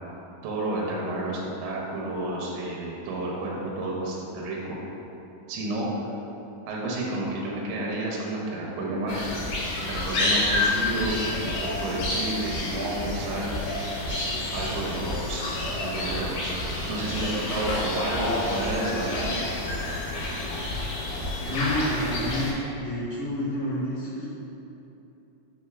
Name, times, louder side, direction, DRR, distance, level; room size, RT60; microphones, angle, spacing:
voice 1, 0.4-4.8 5.5-5.9 6.7-9.2 9.9-13.6 14.0-15.4 15.8-16.5 16.9-19.3, right 1 dB, 80° right, -3 dB, 1.9 m, -31 dB
sound 1, 9.1-22.5, left 2 dB, 90° left, 2.5 m, -29 dB
voice 2, 21.4-24.2, left 1 dB, 70° left, -13 dB, 0.7 m, -29 dB
5.5 x 3.4 x 2.3 m, 2.9 s
omnidirectional pair, 3.9 m